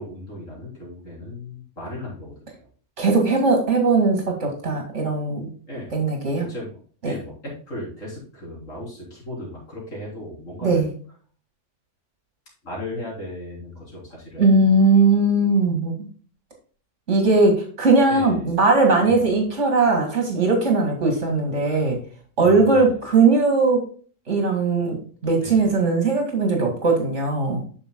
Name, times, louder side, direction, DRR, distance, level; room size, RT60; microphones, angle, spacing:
voice 1, 0.0-2.7 5.7-6.0 6.3-6.8 7.0-10.9 12.6-14.4 18.1-18.6 19.0-19.3 22.4-22.9 25.4-25.7, left 1 dB, 75° left, -4 dB, 4.0 m, -36 dB
voice 2, 3.0-5.5 5.9-6.5 7.0-7.1 10.6-10.9 14.4-16.0 17.1-22.0 22.4-23.8 24.3-25.0 25.2-27.6, right 3 dB, 60° right, 2 dB, 2.4 m, -19 dB
8.8 x 6.9 x 2.2 m, 0.42 s
omnidirectional pair, 1.4 m